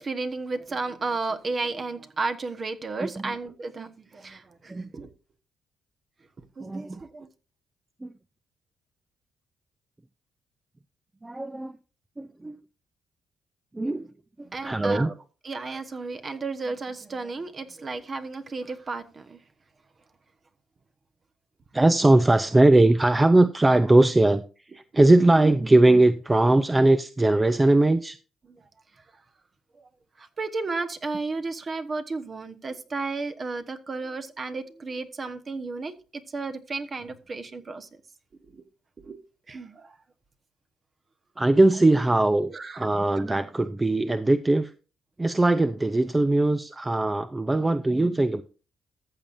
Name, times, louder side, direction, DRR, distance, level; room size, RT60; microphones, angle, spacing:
voice 1, 0.0-5.1 6.6-7.3 14.4-15.1 15.4-19.4 22.0-22.1 23.4-23.5 24.7-25.0 28.4-28.6 29.0-29.1 29.8-29.9 30.2-37.9 38.4-38.6 39.0-39.2 39.5-40.0 41.7-41.8 42.5-43.2, right 3 dB, 40° right, 1.2 m, -33 dB
voice 2, 3.0-3.3 4.7-4.9 6.6-7.0 8.0-8.1 11.2-11.7 12.2-12.6 13.7-14.1 14.4-15.1 21.7-24.4 24.7-28.2 41.4-44.7 45.2-48.4, right 2 dB, 15° right, 0.5 m, -20 dB
14.5 x 7.2 x 2.6 m
cardioid pair, 90°, 0 cm